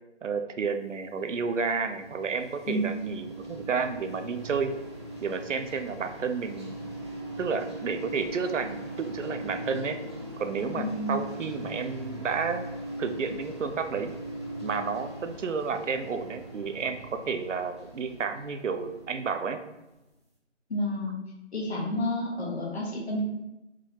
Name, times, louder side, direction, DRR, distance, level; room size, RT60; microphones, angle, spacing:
voice 1, 0.2-4.7 5.2-6.8 7.4-10.0 10.4-12.7 13.0-14.1 14.6-19.6, right 5 dB, 80° right, 8 dB, 0.7 m, -31 dB
sound 1, 1.0-20.0, right 1 dB, 25° right, 0.5 m, -40 dB
voice 2, 10.7-11.1 20.7-21.2 21.5-23.2, left 1 dB, 60° left, -2 dB, 1.4 m, -30 dB
4.8 x 3.7 x 2.9 m, 0.95 s
figure-of-eight pair, 165°, 37 cm